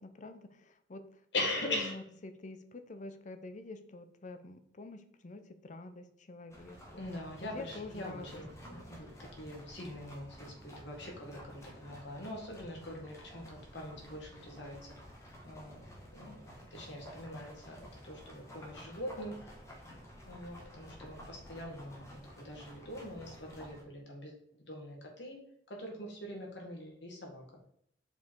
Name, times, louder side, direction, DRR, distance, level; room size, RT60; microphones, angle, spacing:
voice 1, 0.0-1.2 1.6-6.8 7.5-8.4, left 2 dB, 45° left, 9 dB, 0.6 m, -46 dB
voice 2, 1.3-2.0 7.0-9.1 9.4-14.9 15.4-15.8 16.1-16.4 16.7-19.5 20.2-24.4 24.7-25.4 25.7-27.4, left 1 dB, 75° left, 0 dB, 1.9 m, -42 dB
sound 1, 6.5-23.8, equal, 15° left, 1.5 m, -52 dB
5.4 x 4.7 x 4.5 m, 0.70 s
head